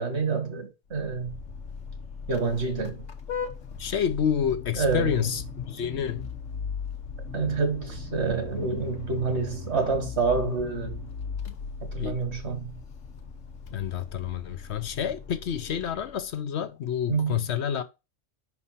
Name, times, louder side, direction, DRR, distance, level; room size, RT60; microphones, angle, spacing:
voice 1, 0.0-1.4 2.3-3.0 4.8-5.3 7.3-11.1 11.9-12.7 17.1-17.4, right 4 dB, 60° right, 2.0 m, -28 dB
Vehicle horn car horn honking, 0.9-16.3, left 5 dB, 85° left, 1.3 m, -38 dB
voice 2, 3.8-6.2 12.0-12.3 13.7-17.8, left 8 dB, 70° left, 1.0 m, -29 dB
5.5 x 4.6 x 5.6 m
omnidirectional pair, 1.3 m